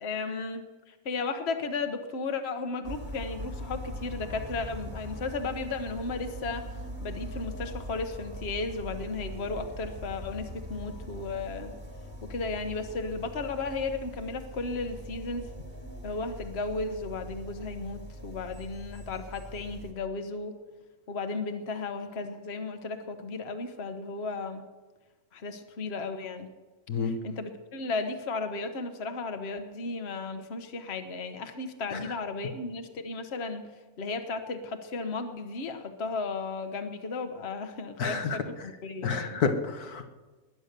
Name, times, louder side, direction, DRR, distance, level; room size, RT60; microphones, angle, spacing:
voice 1, 0.0-6.7 7.0-11.8 12.2-15.5 16.0-20.6 21.1-24.7 25.3-26.5 27.0-33.7 34.0-39.4, left 3 dB, 45° left, 7 dB, 1.3 m, -35 dB
sound 1, 2.8-19.9, equal, 30° right, 2.2 m, -41 dB
voice 2, 38.0-38.4 39.0-40.1, left 5 dB, 80° left, 6 dB, 1.8 m, -29 dB
20.5 x 9.7 x 6.8 m, 1.3 s
omnidirectional pair, 1.6 m